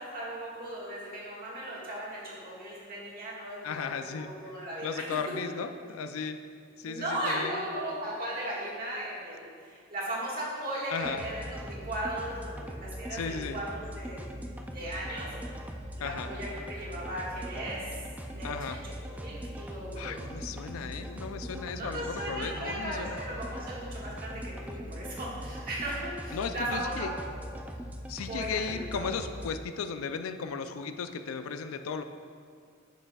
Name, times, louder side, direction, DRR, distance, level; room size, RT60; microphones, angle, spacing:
voice 1, 0.0-5.0 6.8-15.3 15.9-17.9 18.3-20.2 21.7-27.1 28.3-29.1, right 1 dB, 45° right, -5 dB, 1.6 m, -37 dB
voice 2, 3.6-4.6 4.8-6.4 6.8-7.5 10.9-11.3 13.1-13.6 16.0-16.3 18.4-18.8 20.0-23.2 26.3-27.1 28.1-32.0, left 6 dB, 85° left, 9 dB, 0.4 m, -35 dB
sound 1, 11.0-29.5, equal, 5° right, 0.3 m, -41 dB
9.3 x 6.6 x 2.3 m, 2.1 s
head